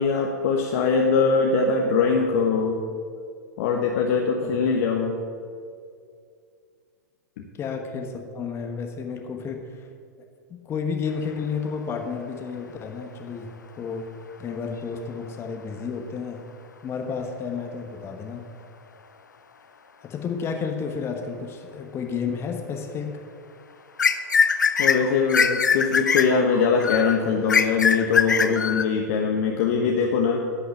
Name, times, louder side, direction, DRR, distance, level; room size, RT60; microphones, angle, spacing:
voice 1, 0.0-2.8 3.6-5.2 24.8-30.4, left 5 dB, 55° left, 1 dB, 1.2 m, -22 dB
voice 2, 7.6-9.9 10.5-14.1 14.4-16.4 16.8-18.5 20.0-23.2, left 5 dB, 25° left, 4 dB, 1.2 m, -31 dB
sound 1, 24.0-28.9, left 6 dB, 90° left, 0.6 m, -22 dB
11.0 x 6.4 x 8.4 m, 2.3 s
hypercardioid pair, 105°, 10 cm